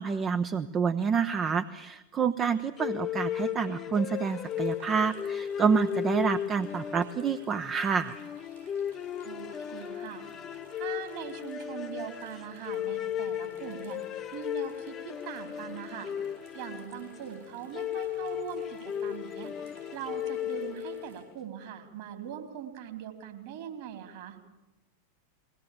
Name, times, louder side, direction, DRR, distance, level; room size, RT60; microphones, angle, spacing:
voice 1, 0.0-8.2, right 6 dB, 25° right, 10 dB, 0.7 m, -28 dB
sound 1, 2.8-21.3, left 10 dB, 25° left, 0.7 m, -36 dB
sound 2, 4.2-21.2, right 7 dB, 65° right, 7.1 m, -56 dB
voice 2, 9.2-10.2 10.7-14.0 14.3-16.1 16.5-19.5 19.9-24.4, right 9 dB, 50° right, 4 dB, 4.0 m, -41 dB
21.5 x 18.5 x 8.7 m, 1.0 s
figure-of-eight pair, 90°, 0 cm